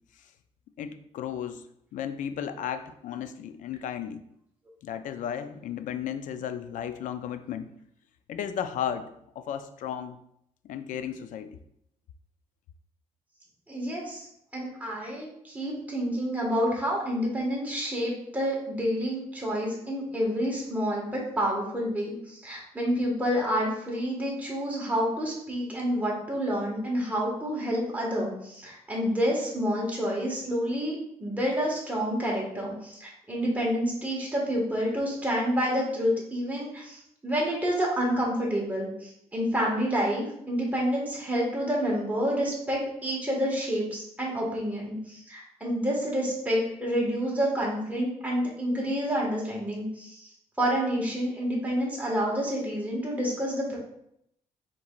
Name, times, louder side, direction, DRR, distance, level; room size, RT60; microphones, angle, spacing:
voice 1, 0.8-1.6 1.9-4.2 4.8-7.7 8.3-9.1 9.4-10.2 10.6-11.6, left 9 dB, 80° left, 10 dB, 0.4 m, -34 dB
voice 2, 13.7-14.3 14.5-53.8, equal, 10° right, -4 dB, 1.6 m, -28 dB
4.5 x 4.2 x 2.4 m, 0.73 s
cardioid pair, 105°, 13 cm